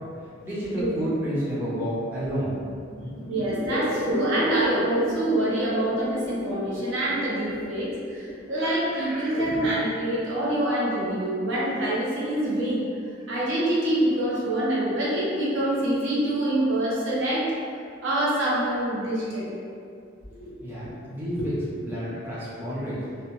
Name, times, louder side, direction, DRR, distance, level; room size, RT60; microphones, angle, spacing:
voice 1, 0.0-2.6 20.3-21.5 21.8-23.0, right 1 dB, 10° right, -10 dB, 0.4 m, -30 dB
sound 1, 2.8-9.7, equal, 50° right, 1.4 m, -33 dB
voice 2, 3.3-12.8 13.3-17.5 18.0-19.5 20.4-20.5 20.8-20.9 21.4-21.5, right 1 dB, 75° right, -7 dB, 0.7 m, -25 dB
2.7 x 2.0 x 2.9 m, 2.4 s
head